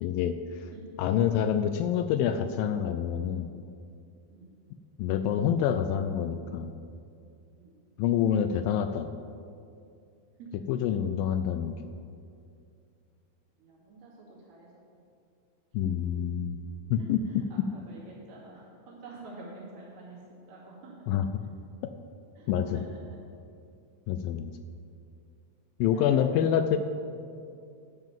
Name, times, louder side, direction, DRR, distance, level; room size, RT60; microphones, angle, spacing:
voice 1, 0.0-0.4 1.0-3.5 5.0-6.7 8.0-9.1 10.7-11.8 15.7-16.6 16.9-17.4 21.1-21.3 22.5-22.8 24.1-24.5 25.8-26.8, left 9 dB, 80° left, 8 dB, 2.1 m, -27 dB
voice 2, 13.6-14.7 17.0-20.2 20.5-20.9 22.4-23.2 25.9-26.6, right 2 dB, 90° right, -5 dB, 4.6 m, -48 dB
12.5 x 5.8 x 7.3 m, 2.4 s
omnidirectional pair, 4.4 m